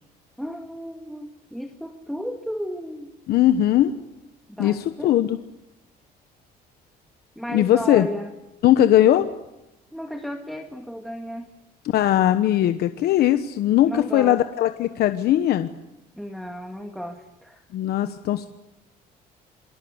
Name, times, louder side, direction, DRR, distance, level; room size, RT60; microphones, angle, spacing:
voice 1, 0.4-3.2 4.5-5.3 7.4-8.3 9.9-11.5 13.8-14.5 16.2-17.6, equal, ahead, 5 dB, 2.1 m, -34 dB
voice 2, 3.3-3.9 4.6-5.4 7.5-8.1 8.6-9.3 11.9-15.7 17.7-18.5, left 12 dB, 70° left, 9 dB, 1.2 m, -19 dB
27.5 x 22.5 x 8.1 m, 0.93 s
cardioid pair, 110°, 17 cm